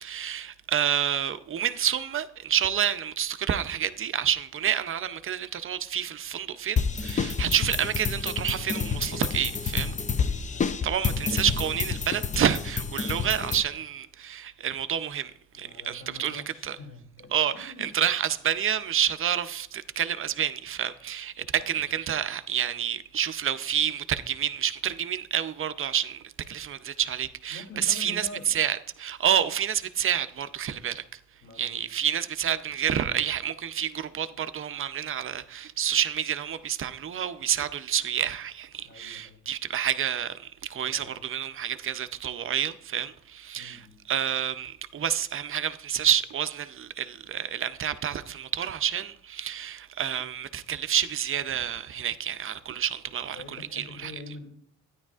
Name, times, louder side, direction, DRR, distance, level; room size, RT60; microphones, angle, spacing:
voice 1, 0.0-10.0 10.6-16.8 17.3-31.2 31.6-54.1, right 9 dB, 45° right, 0.6 m, -29 dB
sound 1, 6.8-13.6, left 5 dB, 25° left, 0.5 m, -29 dB
voice 2, 10.5-10.9 15.5-17.9 21.6-21.8 27.5-28.5 31.4-31.8 38.8-39.4 40.8-41.2 43.5-44.0 53.3-54.4, left 2 dB, 40° left, 2.7 m, -45 dB
13.0 x 10.0 x 2.4 m
cardioid pair, 90°, 30 cm